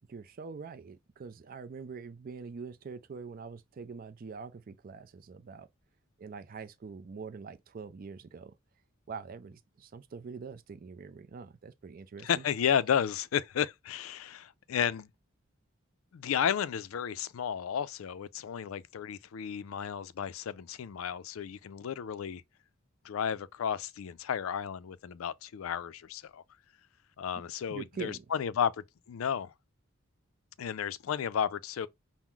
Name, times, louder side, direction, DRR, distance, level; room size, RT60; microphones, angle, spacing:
voice 1, 0.1-5.7 6.2-8.5 9.1-12.4 27.7-28.3, right 5 dB, 45° right, 0.4 m, -44 dB
voice 2, 12.2-15.1 16.1-22.4 23.0-26.4 27.2-28.7 29.1-29.5 30.6-31.9, left 8 dB, 85° left, 0.4 m, -32 dB
5.9 x 2.0 x 3.7 m
head